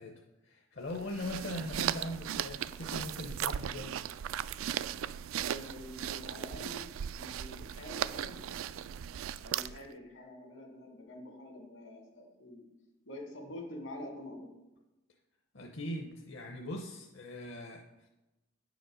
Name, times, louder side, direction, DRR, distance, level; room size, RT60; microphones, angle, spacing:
voice 1, 0.0-3.9 15.5-18.1, left 1 dB, 65° left, 1 dB, 0.8 m, -41 dB
sound 1, 0.9-9.9, right 10 dB, 85° right, 0.3 m, -37 dB
voice 2, 5.4-6.8 7.1-8.4 9.4-12.6 13.1-14.5, left 1 dB, 80° left, 2 dB, 2.3 m, -46 dB
9.3 x 5.0 x 6.3 m, 1.0 s
head